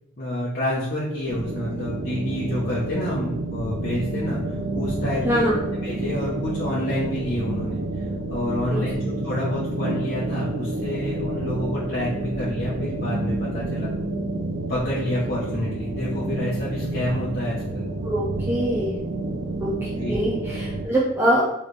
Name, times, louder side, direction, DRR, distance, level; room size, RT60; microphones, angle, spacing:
voice 1, 0.2-5.5 5.8-8.0 8.3-14.1 14.7-17.9 20.0-20.2, left 1 dB, 45° left, -7 dB, 0.8 m, -28 dB
sound 1, 1.3-20.9, right 2 dB, 75° right, 0.5 m, -29 dB
voice 2, 5.2-5.6 8.7-8.8 18.0-19.0 19.6-21.5, right 1 dB, 10° right, -7 dB, 0.5 m, -24 dB
4.2 x 3.1 x 3.2 m, 0.90 s
head